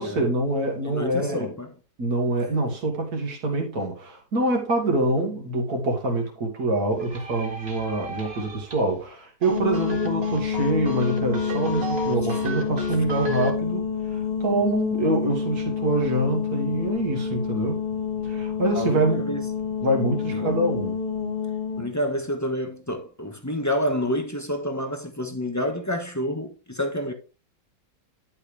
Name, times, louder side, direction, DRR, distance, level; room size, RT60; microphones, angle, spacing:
voice 1, 0.0-1.5 2.0-17.8 18.2-19.2 19.8-21.0, right 2 dB, 80° right, 2.3 m, -25 dB
voice 2, 0.8-1.7 18.7-19.4 20.3-20.6 21.8-27.1, equal, 10° left, 1.1 m, -28 dB
sound 1, 6.9-9.0 9.4-13.5, right 1 dB, 40° right, 2.0 m, -35 dB
sound 2, 9.5-21.9, left 6 dB, 30° left, 1.2 m, -28 dB
10.5 x 5.8 x 3.3 m
omnidirectional pair, 1.6 m